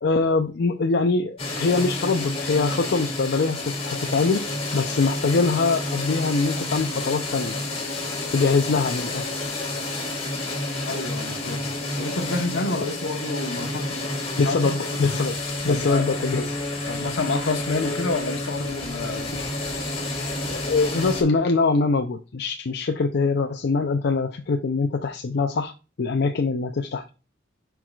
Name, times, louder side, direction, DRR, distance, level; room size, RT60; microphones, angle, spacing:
voice 1, 0.0-4.4 4.7-7.6 8.3-9.5 14.4-15.4 15.6-16.6 20.5-25.7 26.0-27.1, left 4 dB, 60° left, 0.5 m, -23 dB
sound 1, 1.4-21.2, left 2 dB, 35° left, 2.2 m, -30 dB
voice 2, 10.9-11.7 12.0-14.0 14.4-14.6 14.9-15.0 15.7-16.0 16.9-19.5, left 3 dB, 80° left, 1.0 m, -28 dB
11.0 x 4.7 x 2.3 m
head